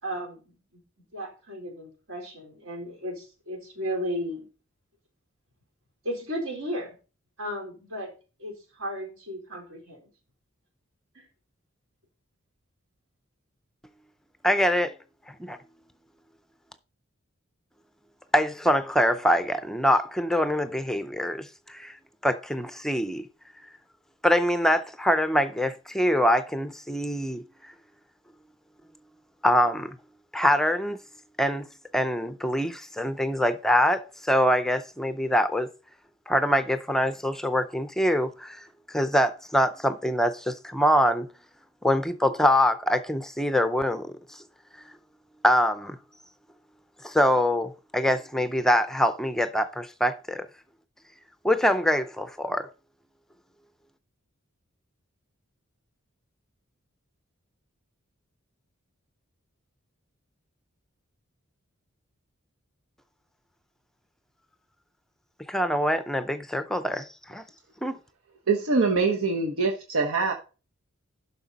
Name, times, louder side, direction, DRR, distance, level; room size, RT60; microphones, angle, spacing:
voice 1, 0.0-0.6 1.1-4.4 6.0-6.9 7.4-8.1 8.4-10.1 11.1-11.3, equal, 75° right, 3.8 m, -34 dB
voice 2, 14.4-15.0 15.4-15.6 18.3-22.0 22.2-23.3 24.2-27.7 29.4-30.0 30.3-31.0 31.4-31.7 31.9-35.7 36.3-38.7 38.9-41.3 41.8-44.4 45.4-46.0 47.0-50.5 51.4-52.7 65.5-67.4 67.8-68.0, equal, ahead, 0.4 m, -24 dB
voice 3, 68.5-70.3, right 4 dB, 90° right, 1.2 m, -24 dB
11.5 x 5.9 x 4.0 m
head